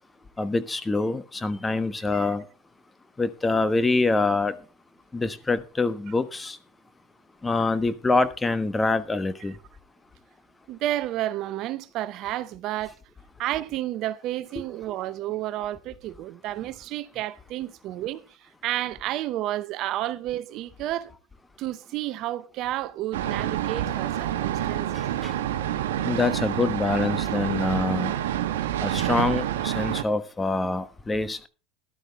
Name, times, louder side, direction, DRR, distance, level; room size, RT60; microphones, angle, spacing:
voice 1, 0.4-2.4 3.2-4.5 5.1-6.6 7.4-9.5 24.9-25.3 26.0-28.1 28.8-31.5, left 3 dB, 15° left, 1.1 m, -25 dB
voice 2, 10.7-12.9 13.4-21.1 21.6-25.0, right 14 dB, 55° right, 0.7 m, -31 dB
sound 1, 23.1-30.0, right 12 dB, 80° right, 1.1 m, -28 dB
13.0 x 12.0 x 3.5 m
hypercardioid pair, 90°, 0 cm